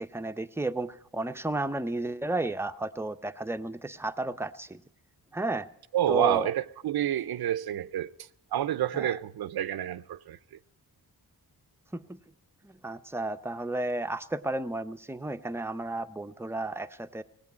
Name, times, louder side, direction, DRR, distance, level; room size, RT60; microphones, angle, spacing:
voice 1, 0.0-4.8 5.3-5.7 6.1-6.5 8.9-9.1 11.9-12.2 12.6-17.2, right 2 dB, 5° right, 0.6 m, -33 dB
voice 2, 5.9-10.6, right 11 dB, 75° right, 0.6 m, -29 dB
18.0 x 8.2 x 9.5 m
wide cardioid pair, 110°, 38 cm